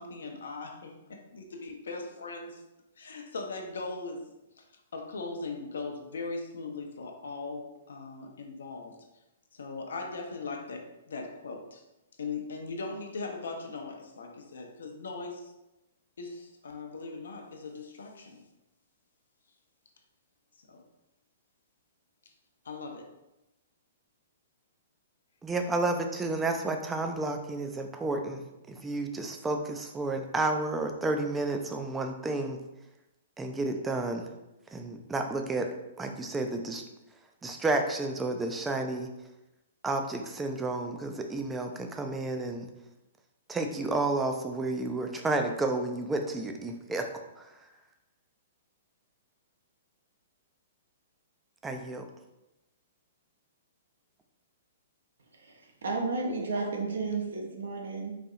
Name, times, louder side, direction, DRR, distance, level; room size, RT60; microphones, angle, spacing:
voice 1, 0.0-2.6 3.0-4.3 4.6-4.7 4.9-8.9 9.5-11.8 12.2-15.5 16.2-18.4 20.7-20.8 22.6-23.1, left 3 dB, 65° left, 3 dB, 0.6 m, -39 dB
voice 2, 25.4-32.6 33.4-34.2 34.7-35.7 36.0-36.8 37.4-39.1 39.8-42.7 43.5-47.1 47.4-47.5 51.6-52.0, right 2 dB, 10° right, 4 dB, 0.4 m, -31 dB
voice 3, 55.4-58.1, right 3 dB, 65° right, 1 dB, 0.7 m, -32 dB
4.2 x 2.6 x 2.4 m, 0.95 s
figure-of-eight pair, 115°, 0 cm